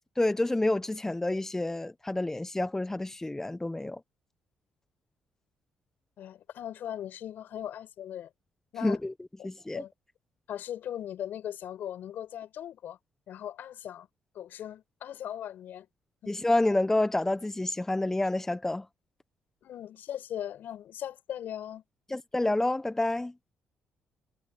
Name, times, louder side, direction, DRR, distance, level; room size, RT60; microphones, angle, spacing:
voice 1, 0.2-4.0 8.8-9.1 9.4-9.8 16.3-18.8 22.1-23.3, left 2 dB, 15° left, 1.1 m, -28 dB
voice 2, 6.2-8.3 8.7-9.0 9.4-9.5 9.7-9.9 10.5-13.0 13.3-14.1 14.3-15.9 16.2-16.3 19.6-21.8, left 10 dB, 70° left, 7.1 m, -39 dB
cardioid pair, 75°, 3 cm